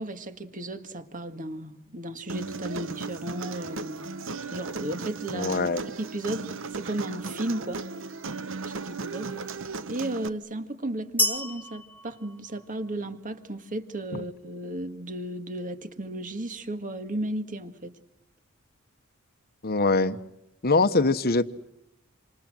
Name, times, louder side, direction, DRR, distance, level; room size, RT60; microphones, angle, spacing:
voice 1, 0.0-4.0 4.5-6.5 6.7-7.8 8.6-9.3 9.9-17.9, right 1 dB, 40° right, 1.9 m, -34 dB
Human voice, 2.3-10.3, right 4 dB, 60° right, 1.0 m, -36 dB
voice 2, 5.3-5.8 14.1-14.2 19.6-20.2 20.6-21.4, left 3 dB, 45° left, 1.2 m, -23 dB
sound 1, 11.2-13.1, left 1 dB, 10° left, 1.5 m, -30 dB
27.5 x 27.0 x 7.8 m
head